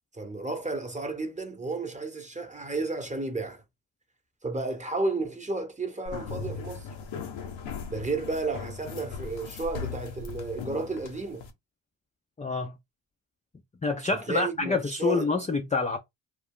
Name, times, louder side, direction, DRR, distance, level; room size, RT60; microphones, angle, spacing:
voice 1, 0.1-3.6 4.4-6.9 7.9-11.4 14.3-15.3, right 3 dB, 15° right, 0.9 m, -32 dB
sound 1, 6.1-11.5, left 5 dB, 85° left, 0.7 m, -38 dB
voice 2, 12.4-12.8 13.8-16.0, left 3 dB, 15° left, 0.4 m, -27 dB
2.3 x 2.0 x 3.6 m
supercardioid pair, 45°, 46 cm